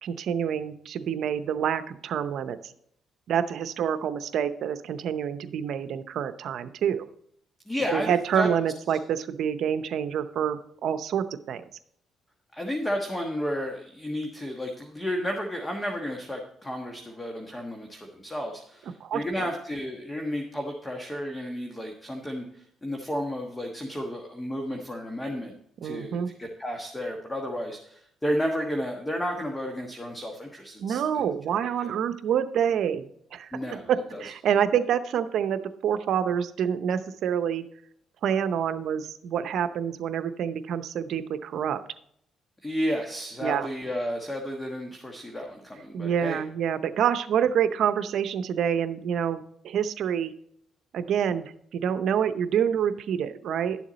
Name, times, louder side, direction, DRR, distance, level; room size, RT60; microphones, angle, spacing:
voice 1, 0.0-2.7 3.3-7.0 7.9-11.6 19.0-19.5 25.8-26.3 30.8-33.5 33.9-37.6 38.2-41.8 43.4-43.7 45.9-50.3 50.9-53.8, right 8 dB, 70° right, 11 dB, 0.7 m, -27 dB
voice 2, 7.7-8.5 12.5-25.5 25.8-31.2 31.8-31.9 33.5-34.2 42.6-46.4, equal, 15° left, 2 dB, 1.4 m, -32 dB
12.0 x 7.2 x 4.0 m, 0.69 s
cardioid pair, 90°, 0 cm